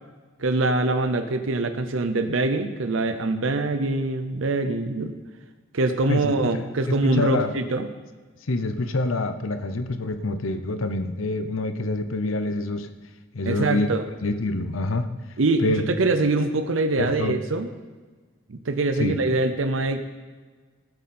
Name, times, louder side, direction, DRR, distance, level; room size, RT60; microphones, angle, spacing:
voice 1, 0.4-5.1 5.7-7.9 13.5-14.0 15.4-17.7 18.5-20.0, right 2 dB, 80° right, 8 dB, 0.7 m, -24 dB
voice 2, 6.1-6.6 7.0-7.5 8.4-12.9 13.3-13.9 14.2-15.1 15.6-15.8 17.0-17.4 18.9-19.2, left 2 dB, 85° left, 9 dB, 0.8 m, -26 dB
16.0 x 7.9 x 4.4 m, 1.4 s
head